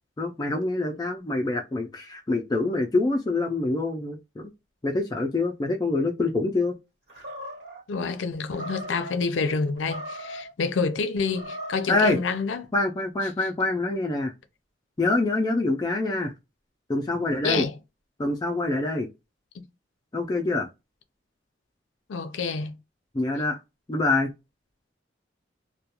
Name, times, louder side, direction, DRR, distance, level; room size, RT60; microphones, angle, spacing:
voice 1, 0.2-4.5 4.8-6.8 11.9-12.2 12.7-14.3 15.0-16.3 16.9-17.6 18.2-19.1 20.1-20.7 23.1-23.6 23.9-24.3, left 2 dB, 20° left, 0.3 m, -25 dB
Animal, 7.1-7.8 8.5-9.1 9.8-10.5 11.2-11.9, equal, 65° right, 1.2 m, -38 dB
voice 2, 7.9-12.6 17.4-17.7 19.5-19.7 22.1-22.8, left 4 dB, 85° left, 0.5 m, -28 dB
2.3 x 2.2 x 2.8 m
head